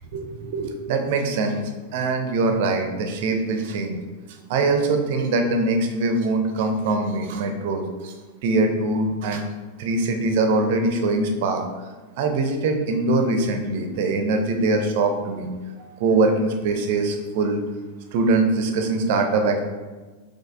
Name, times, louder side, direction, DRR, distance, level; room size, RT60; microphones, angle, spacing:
voice 1, 0.1-1.6 1.9-4.0 4.5-8.1 8.4-9.4 9.8-11.6 12.2-15.5 15.8-17.6 18.1-19.6, right 3 dB, 50° right, 5 dB, 0.6 m, -22 dB
5.5 x 3.6 x 2.4 m, 1.3 s
figure-of-eight pair, 90°, 0 cm